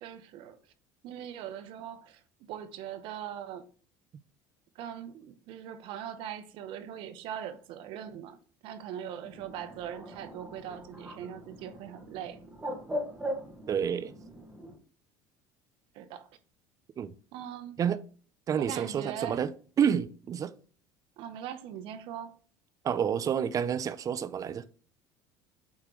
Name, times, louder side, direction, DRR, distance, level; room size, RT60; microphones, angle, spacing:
voice 1, 0.0-0.6 1.0-3.7 4.7-8.4 8.6-12.4 15.9-16.3 17.3-17.8 18.6-19.4 21.2-22.4, right 9 dB, 65° right, 0.8 m, -41 dB
Bird, 9.2-14.8, equal, 15° right, 1.7 m, -40 dB
voice 2, 13.7-14.1 17.0-17.1 17.8-18.0 18.5-19.5 19.8-20.5 22.8-24.6, right 8 dB, 35° right, 0.5 m, -29 dB
8.3 x 3.7 x 3.1 m
supercardioid pair, 95°, 10 cm